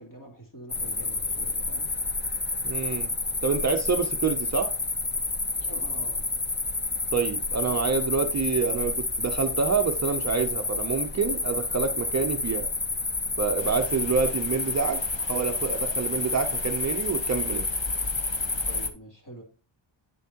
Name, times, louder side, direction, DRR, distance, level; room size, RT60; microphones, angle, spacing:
voice 1, 0.0-1.9 5.5-6.2 18.6-19.4, right 1 dB, 40° left, 0 dB, 2.9 m, -45 dB
sound 1, 0.7-18.9, left 3 dB, 20° left, 0.7 m, -29 dB
voice 2, 2.6-3.1 3.4-4.7 7.1-12.7 13.4-17.6, right 5 dB, 35° right, 6 dB, 0.6 m, -27 dB
sound 2, 13.6-18.9, left 6 dB, 65° left, 1.0 m, -46 dB
8.4 x 7.1 x 2.8 m, 0.35 s
wide cardioid pair, 125°, 49 cm